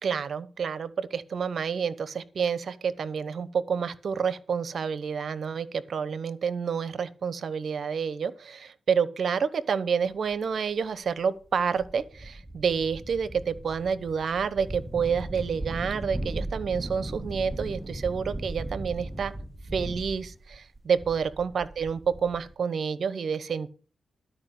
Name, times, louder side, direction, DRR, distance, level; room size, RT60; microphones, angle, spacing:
voice 1, 0.0-19.3 19.7-23.7, right 6 dB, 65° right, 15 dB, 1.0 m, -29 dB
sound 1, 10.3-10.4 11.1-11.2 11.5-22.5, right 1 dB, 10° right, 0.9 m, -37 dB
12.5 x 5.1 x 7.8 m, 0.38 s
cardioid pair, 70°, 0 cm